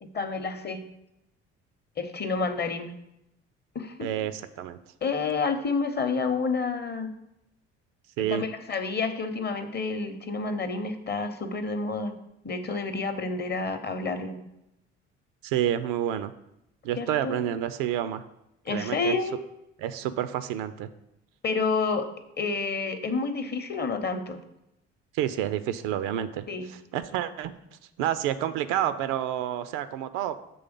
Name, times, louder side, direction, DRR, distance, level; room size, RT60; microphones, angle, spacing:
voice 1, 0.0-0.8 2.0-2.9 3.7-4.1 5.0-7.1 8.3-12.1 12.4-14.4 17.0-17.4 18.7-19.4 21.4-22.1 22.4-24.4 26.5-26.7, left 4 dB, 30° left, 8 dB, 0.8 m, -29 dB
voice 2, 4.0-4.8 8.2-8.5 15.4-16.3 16.8-18.2 18.7-19.1 19.8-20.9 25.1-26.4 26.9-27.5 28.0-30.3, right 11 dB, 60° right, 13 dB, 0.5 m, -29 dB
6.9 x 3.4 x 5.2 m, 0.85 s
figure-of-eight pair, 50°, 35 cm